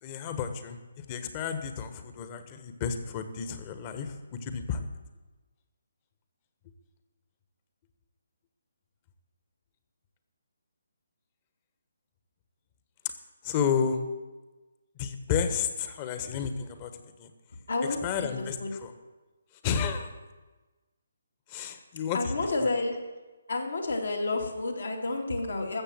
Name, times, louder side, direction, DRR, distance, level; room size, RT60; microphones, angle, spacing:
voice 1, 0.0-4.9 13.4-14.0 15.0-16.9 17.2-17.3 17.8-18.9 19.6-20.1 21.5-22.7, left 7 dB, 25° left, 8 dB, 1.3 m, -32 dB
voice 2, 17.7-18.7 22.1-23.0 23.5-25.8, left 2 dB, 70° left, 2 dB, 2.5 m, -30 dB
14.0 x 7.4 x 7.5 m, 1.2 s
figure-of-eight pair, 145°, 0 cm